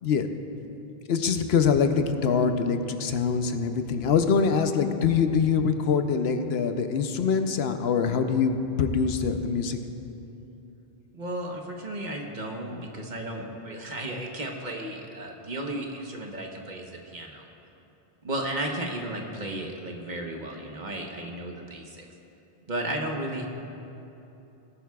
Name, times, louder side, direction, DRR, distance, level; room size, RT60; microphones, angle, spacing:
voice 1, 1.1-8.5 8.8-9.8, left 6 dB, 85° left, 7 dB, 0.9 m, -24 dB
voice 2, 11.1-17.4 18.2-22.0 22.7-23.5, right 1 dB, 50° right, 1 dB, 1.2 m, -34 dB
18.0 x 11.0 x 2.4 m, 2.9 s
omnidirectional pair, 1.0 m